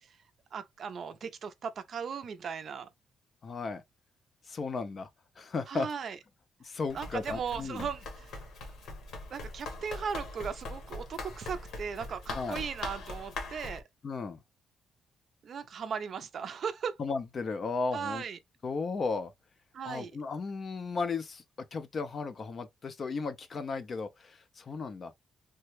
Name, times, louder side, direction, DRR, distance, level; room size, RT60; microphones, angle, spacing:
voice 1, 0.5-2.9 5.7-6.2 6.9-8.4 9.3-13.8 15.4-17.0 17.9-18.4 19.7-20.1, right 6 dB, 45° right, 0.4 m, -37 dB
voice 2, 3.4-3.8 4.5-5.1 5.4-5.9 6.6-7.9 12.3-12.6 14.0-14.4 17.0-18.2 18.6-19.3 19.8-21.4 21.7-25.1, left 4 dB, 35° left, 0.4 m, -35 dB
Run, 6.9-13.8, left 2 dB, 70° left, 1.1 m, -41 dB
3.2 x 2.1 x 3.1 m
cardioid pair, 175°, 0 cm